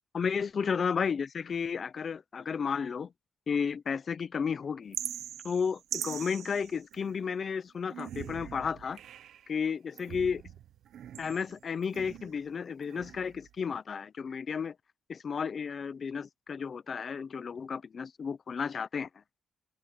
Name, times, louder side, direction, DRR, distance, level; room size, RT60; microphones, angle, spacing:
voice 1, 0.1-3.1 3.5-5.0 5.4-9.0 9.5-10.4 11.2-14.8 15.1-19.2, left 6 dB, 45° left, 0.7 m, -33 dB
sound 1, 4.9-7.4 7.9-9.5 9.9-12.5 12.8-13.5, right 10 dB, 75° right, 0.8 m, -42 dB
open air
cardioid pair, 105°, 0 cm